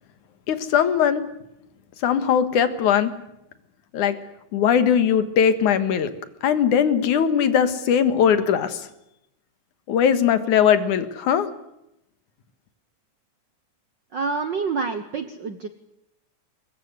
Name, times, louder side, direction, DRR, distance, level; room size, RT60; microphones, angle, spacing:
voice 1, 0.5-1.2 2.0-3.1 3.9-4.2 4.5-6.1 6.4-8.8 9.9-11.5, left 8 dB, 80° left, 11 dB, 3.0 m, -20 dB
voice 2, 14.1-15.7, right 4 dB, 60° right, 9 dB, 1.2 m, -27 dB
23.0 x 21.0 x 8.0 m, 0.84 s
omnidirectional pair, 3.5 m